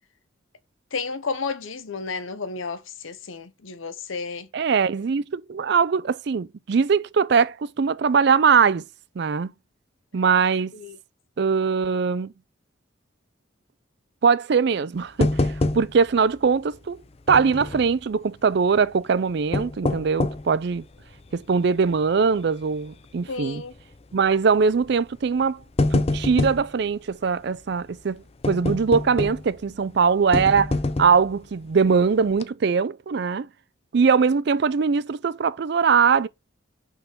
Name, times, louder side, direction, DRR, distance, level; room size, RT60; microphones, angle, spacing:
voice 1, 0.9-4.5 10.7-11.0 23.3-23.7, left 4 dB, 80° left, 0.9 m, -32 dB
voice 2, 4.5-8.8 9.2-9.5 10.1-10.7 11.4-12.3 14.2-17.0 17.3-20.8 21.3-23.6 24.1-25.6 25.9-33.5 33.9-36.3, right 5 dB, 55° right, 0.4 m, -21 dB
sound 1, 15.2-16.2 16.5-16.6 17.3-17.9 19.3-20.5 21.1-21.2 21.8-22.1 22.4-22.5 23.6-23.9 24.8-25.0 25.4-26.7 28.4-29.6 30.3-31.3 31.8-32.0 32.3-32.4, left 2 dB, 30° left, 0.5 m, -25 dB
5.9 x 4.7 x 5.0 m
head